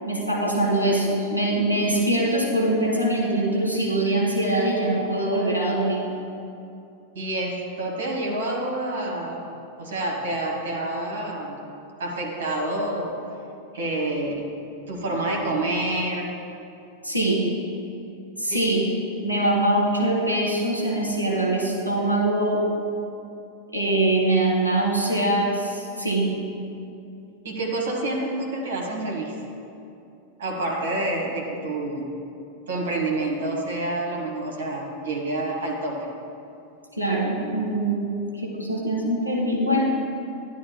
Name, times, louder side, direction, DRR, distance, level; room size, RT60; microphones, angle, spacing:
voice 1, 0.0-6.1 17.0-17.4 18.4-18.9 19.2-22.6 23.7-26.3 37.0-39.9, right 1 dB, 90° left, -4 dB, 1.7 m, -23 dB
voice 2, 7.1-9.4 9.8-11.6 12.0-13.1 13.7-14.4 14.9-16.3 18.5-18.6 27.4-29.4 30.4-32.1 32.7-36.0, right 2 dB, 60° right, 0 dB, 1.2 m, -28 dB
11.0 x 10.0 x 2.2 m, 2.6 s
figure-of-eight pair, 90°, 0 cm